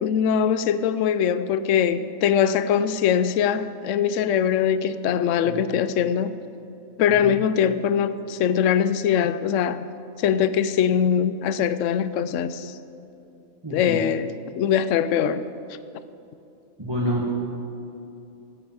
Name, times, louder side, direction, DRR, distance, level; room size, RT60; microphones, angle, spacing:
voice 1, 0.0-6.4 7.0-9.8 10.2-12.7 13.7-15.5, left 8 dB, 70° left, 0.9 m, -22 dB
voice 2, 13.6-14.0 16.8-17.2, equal, 20° right, 1.6 m, -28 dB
16.5 x 8.7 x 7.5 m
omnidirectional pair, 1.5 m